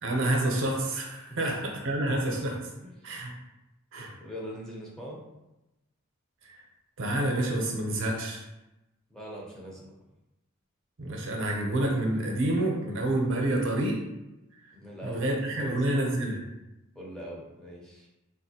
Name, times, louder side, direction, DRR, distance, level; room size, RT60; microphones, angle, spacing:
voice 1, 0.0-2.6 3.0-3.3 3.9-4.1 6.5-6.6 7.0-8.4 11.0-14.0 15.0-16.4, right 1 dB, 60° right, 0 dB, 0.6 m, -28 dB
voice 2, 1.3-1.6 2.8-3.1 4.2-5.2 9.1-9.9 14.7-16.0 16.9-18.1, equal, 5° left, -4 dB, 0.5 m, -42 dB
3.4 x 2.5 x 2.8 m, 0.96 s
head